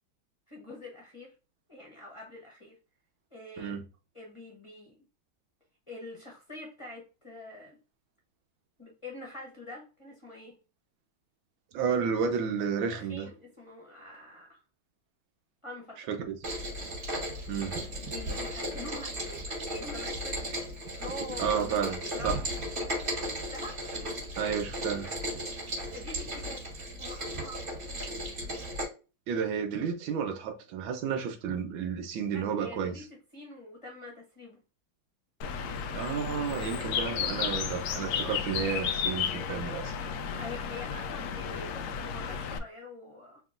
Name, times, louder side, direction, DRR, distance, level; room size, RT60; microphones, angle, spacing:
voice 1, 0.5-1.3 1.7-2.8 3.3-3.8 4.1-5.0 5.9-7.8 8.8-10.6 12.9-14.6 15.6-16.1 17.7-20.6 21.0-22.5 23.3-23.8 25.9-26.6 27.0-27.7 32.3-33.1 33.3-34.6 40.4-43.4, left 2 dB, 20° left, 1.1 m, -45 dB
voice 2, 11.7-13.3 16.1-16.4 17.5-17.8 21.4-22.0 22.2-22.4 24.4-25.1 29.3-33.0 35.9-39.9, right 7 dB, 85° right, 1.6 m, -31 dB
Rain, 16.4-28.9, equal, 45° right, 2.9 m, -36 dB
Bird, 35.4-42.6, left 7 dB, 75° left, 0.9 m, -33 dB
4.9 x 2.9 x 2.5 m
omnidirectional pair, 2.1 m